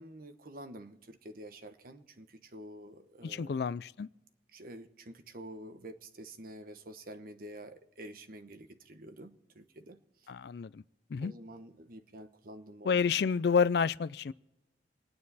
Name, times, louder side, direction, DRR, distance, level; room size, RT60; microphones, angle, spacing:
voice 1, 0.0-3.6 4.5-10.3 11.2-13.0, right 1 dB, 55° right, 1.1 m, -48 dB
voice 2, 3.2-4.1 10.3-10.8 11.1-11.3 12.8-14.3, left 6 dB, 65° left, 0.4 m, -29 dB
27.5 x 9.6 x 4.1 m
head